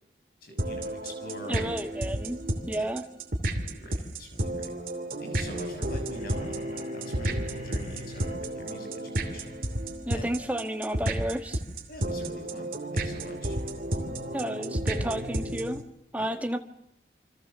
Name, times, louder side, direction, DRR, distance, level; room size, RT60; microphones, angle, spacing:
voice 1, 0.4-1.6 2.7-2.8 3.6-4.7 5.2-9.6 10.1-10.2 11.9-13.6 16.2-16.3, equal, 55° left, 4 dB, 6.4 m, -43 dB
sound 1, 0.6-15.8, right 1 dB, 50° right, 2.9 m, -32 dB
voice 2, 1.5-2.4 2.7-3.0 10.1-11.6 14.3-15.8 16.1-16.6, right 1 dB, 10° right, 6 dB, 1.6 m, -31 dB
sound 2, 6.1-8.4, left 2 dB, 40° left, 6.3 m, -51 dB
28.5 x 25.0 x 6.9 m, 0.74 s
head